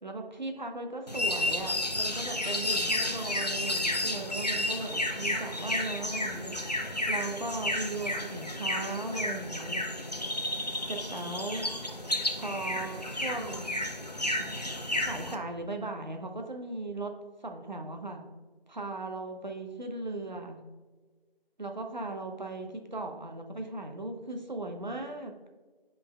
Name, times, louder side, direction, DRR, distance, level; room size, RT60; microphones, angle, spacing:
voice 1, 0.0-6.8 7.1-9.8 10.9-11.7 12.4-13.7 14.4-14.5 15.0-17.1 17.4-18.2 18.7-20.6 21.6-25.3, right 2 dB, 50° right, 4 dB, 0.8 m, -37 dB
sound 1, 1.1-15.3, left 1 dB, 45° left, 0.5 m, -32 dB
7.7 x 5.5 x 2.3 m, 1.4 s
figure-of-eight pair, 170°, 30 cm